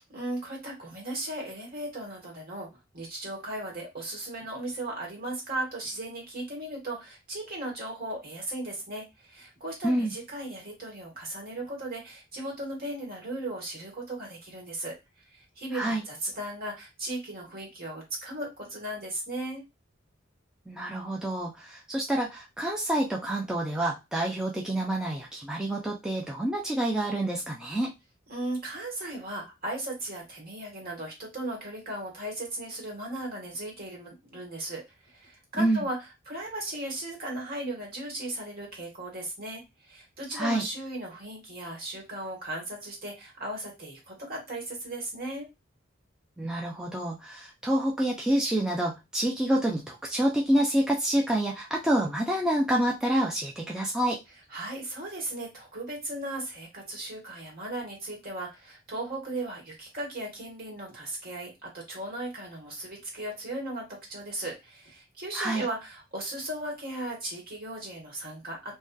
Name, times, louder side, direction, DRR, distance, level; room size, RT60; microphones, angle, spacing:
voice 1, 0.0-19.6 28.3-36.0 36.3-45.5 54.5-68.8, right 1 dB, 50° right, -1 dB, 1.3 m, -37 dB
voice 2, 9.8-10.1 15.7-16.0 20.7-27.9 35.6-35.8 40.3-40.6 46.4-54.2 65.3-65.6, right 1 dB, 5° right, -2 dB, 0.4 m, -27 dB
2.7 x 2.2 x 2.2 m, 0.22 s
head